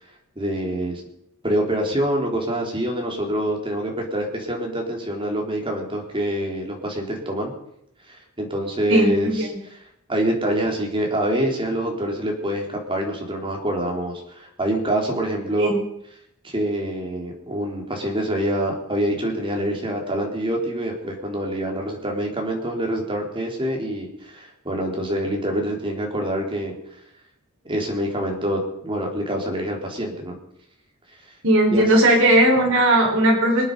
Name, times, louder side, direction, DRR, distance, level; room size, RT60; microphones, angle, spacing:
voice 1, 0.4-1.0 1.4-7.5 8.1-9.5 10.1-15.7 16.4-26.7 27.7-30.4 31.7-32.1, right 1 dB, 25° right, 0 dB, 3.8 m, -26 dB
voice 2, 8.9-9.3 15.6-15.8 31.4-33.6, right 1 dB, 65° right, -1 dB, 4.8 m, -17 dB
25.5 x 9.3 x 5.5 m, 0.74 s
head